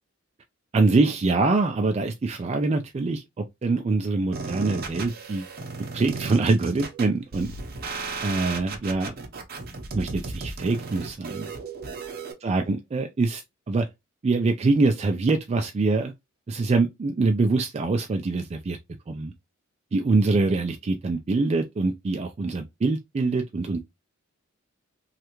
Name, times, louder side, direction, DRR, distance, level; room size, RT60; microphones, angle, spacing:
voice 1, 0.7-5.4 5.9-7.5 8.2-9.1 9.9-11.5 12.4-13.4 13.7-13.9 14.2-16.1 16.5-18.8 19.1-19.3 19.9-23.8, right 3 dB, 30° right, 0.3 m, -24 dB
sound 1, 4.3-12.3, right 3 dB, 50° right, 0.7 m, -35 dB
3.2 x 2.4 x 2.9 m
head